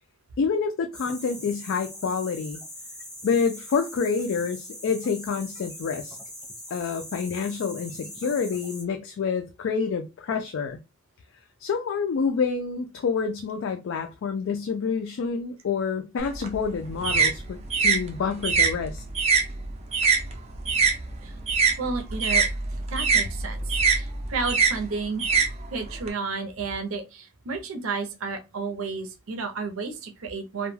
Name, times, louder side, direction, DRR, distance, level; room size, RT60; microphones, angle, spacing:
voice 1, 0.4-2.6 3.2-6.2 6.7-10.8 11.6-19.0, left 5 dB, 60° left, 0.3 m, -28 dB
sound 1, 0.9-8.8, equal, 5° left, 0.8 m, -41 dB
sound 2, 16.2-21.0 21.3-26.1, right 5 dB, 30° right, 0.4 m, -24 dB
voice 2, 21.8-22.5 22.9-25.2 25.7-30.7, right 4 dB, 70° right, 0.6 m, -32 dB
2.2 x 2.1 x 3.1 m
head